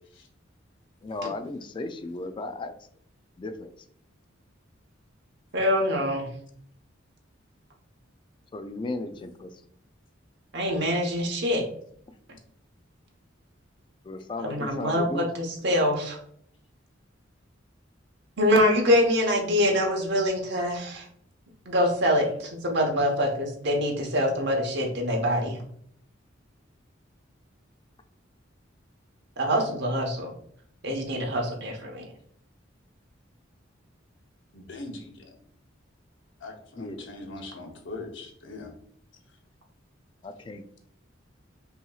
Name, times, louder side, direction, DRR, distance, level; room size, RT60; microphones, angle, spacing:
voice 1, 1.0-2.7 3.4-3.7 8.5-9.5 12.1-12.2 14.0-15.3 36.8-37.1 40.2-40.6, left 2 dB, 25° left, 8 dB, 0.3 m, -35 dB
voice 2, 5.5-6.3 10.5-11.6 14.4-16.2 18.4-21.0 21.7-25.6 29.4-30.3 30.8-32.0, equal, 60° right, 1 dB, 1.0 m, -25 dB
voice 3, 34.5-35.3 36.4-38.7, left 2 dB, 65° left, 3 dB, 0.8 m, -41 dB
5.5 x 2.8 x 2.3 m, 0.64 s
head